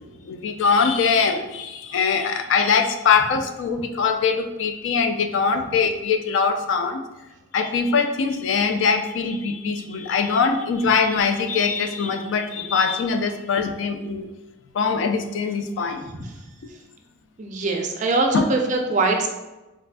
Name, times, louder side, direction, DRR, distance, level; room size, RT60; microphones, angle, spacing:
voice 1, 0.2-7.0 7.5-14.3 14.7-16.1 18.3-18.4, left 5 dB, 65° left, 6 dB, 0.3 m, -22 dB
voice 2, 17.4-19.3, right 3 dB, 35° right, 2 dB, 0.4 m, -22 dB
4.1 x 2.4 x 2.2 m, 1.1 s
head